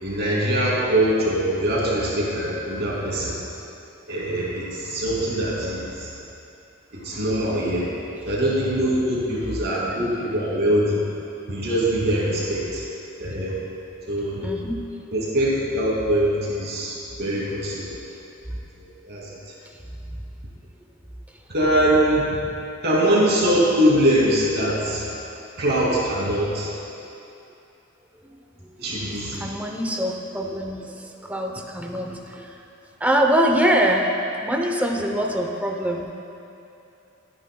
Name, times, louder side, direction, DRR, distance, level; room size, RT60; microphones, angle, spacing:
voice 1, 0.0-3.4 4.1-6.1 6.9-7.9 8.3-11.0 11.5-12.8 13.2-13.5 14.1-14.5 15.1-18.0 18.8-19.3 21.5-22.4 22.8-25.1 25.6-26.7 28.8-29.5, right 1 dB, 60° right, -5 dB, 2.6 m, -22 dB
voice 2, 14.4-14.8 18.5-18.6 20.1-20.2 28.2-32.6 33.0-36.1, equal, 10° right, 2 dB, 0.8 m, -24 dB
22.0 x 9.2 x 2.3 m, 2.8 s
head